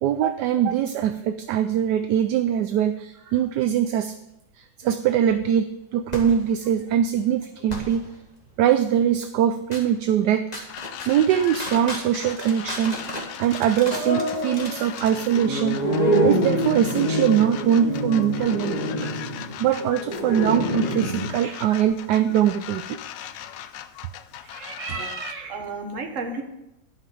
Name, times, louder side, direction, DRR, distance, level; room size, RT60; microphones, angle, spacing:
voice 1, 0.0-4.1 4.6-8.1 8.6-10.5 11.1-13.0 13.4-15.8 16.2-19.1 19.6-23.0, right 9 dB, 75° right, 10 dB, 1.0 m, -22 dB
sound 1, 6.1-6.4 7.7-8.0 9.7-9.8 10.5-11.1 11.4-21.3, equal, 20° left, 1.7 m, -27 dB
sound 2, 10.7-25.3, left 10 dB, 75° left, 1.2 m, -39 dB
voice 2, 24.4-26.4, right 3 dB, 45° right, 3 dB, 1.6 m, -33 dB
11.5 x 5.8 x 6.9 m, 0.89 s
omnidirectional pair, 2.1 m